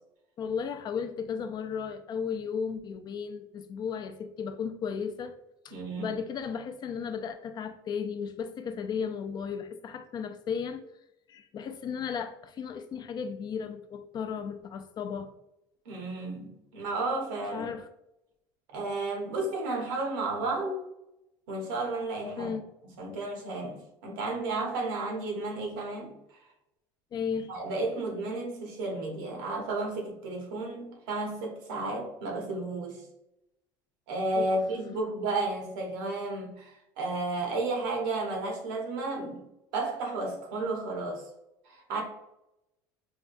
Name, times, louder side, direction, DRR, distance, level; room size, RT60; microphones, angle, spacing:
voice 1, 0.4-5.4 5.6-10.8 11.3-15.3 17.5-17.9 22.4-22.6 27.1-27.5 34.4-34.5, left 6 dB, 40° left, 0.4 m, -35 dB
voice 2, 5.7-6.1 15.8-17.7 18.7-20.8 21.5-22.5 23.0-26.1 27.5-33.0 34.1-39.5 39.7-41.2 41.6-42.0, right 2 dB, 85° right, 1.0 m, -32 dB
4.7 x 2.2 x 2.5 m
supercardioid pair, 100°, 11 cm